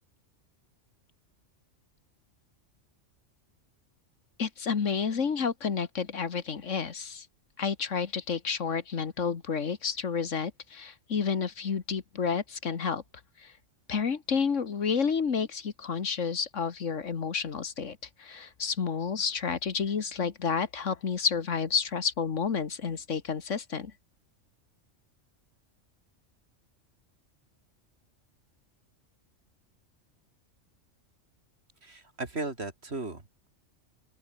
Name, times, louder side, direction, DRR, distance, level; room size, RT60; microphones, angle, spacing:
voice 1, 4.4-7.3 7.6-13.0 13.4-13.5 13.9-23.9, left 6 dB, 70° left, 1.8 m, -30 dB
voice 2, 31.8-33.5, right 3 dB, 55° right, 3.4 m, -36 dB
open air
omnidirectional pair, 1.3 m